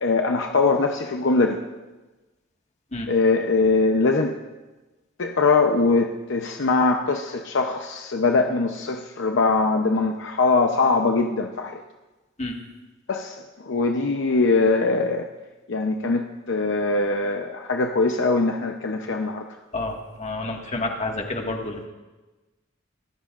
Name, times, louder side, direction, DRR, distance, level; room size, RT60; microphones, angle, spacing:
voice 1, 0.0-1.6 3.1-4.3 5.2-11.8 13.1-15.3 15.7-19.5, left 3 dB, 65° left, 3 dB, 0.7 m, -22 dB
voice 2, 19.7-21.9, left 2 dB, 35° left, 1 dB, 1.8 m, -29 dB
25.0 x 14.0 x 2.5 m, 1.2 s
head